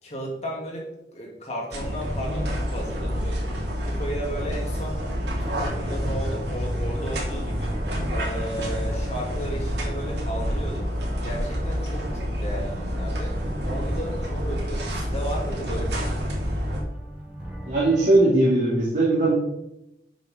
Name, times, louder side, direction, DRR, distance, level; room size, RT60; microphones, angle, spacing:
voice 1, 0.0-3.4 3.8-5.0 5.3-7.8 8.1-10.9 11.2-13.4 13.6-16.3, equal, 40° left, -2 dB, 3.0 m, -34 dB
sound 1, 1.7-16.8, equal, 75° right, 2.8 m, -28 dB
sound 2, 4.9-18.1, equal, 10° right, 2.4 m, -38 dB
voice 2, 17.7-19.3, right 2 dB, 45° right, -8 dB, 3.0 m, -19 dB
11.5 x 7.1 x 3.9 m, 0.87 s
head